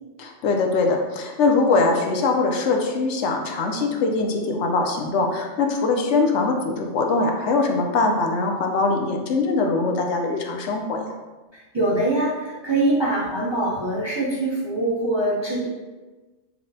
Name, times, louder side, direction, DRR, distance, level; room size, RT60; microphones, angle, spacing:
voice 1, 0.2-11.0, left 3 dB, 75° left, 2 dB, 0.9 m, -22 dB
voice 2, 11.5-15.7, right 1 dB, 35° right, -6 dB, 0.5 m, -23 dB
5.8 x 2.1 x 2.6 m, 1.2 s
omnidirectional pair, 1.2 m